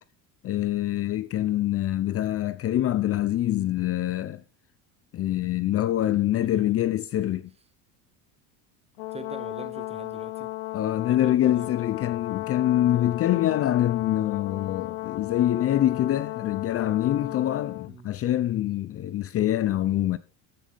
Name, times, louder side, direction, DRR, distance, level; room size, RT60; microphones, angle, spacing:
voice 1, 0.4-4.4 5.1-7.5 10.7-20.2, left 13 dB, 35° left, 0.6 m, -25 dB
voice 2, 6.4-6.7 9.1-10.5 11.0-11.7 17.9-18.1 19.3-19.5, right 4 dB, 15° right, 1.2 m, -44 dB
Brass instrument, 9.0-17.9, left 21 dB, 80° left, 0.7 m, -35 dB
14.0 x 7.5 x 3.5 m
supercardioid pair, 115°, 39 cm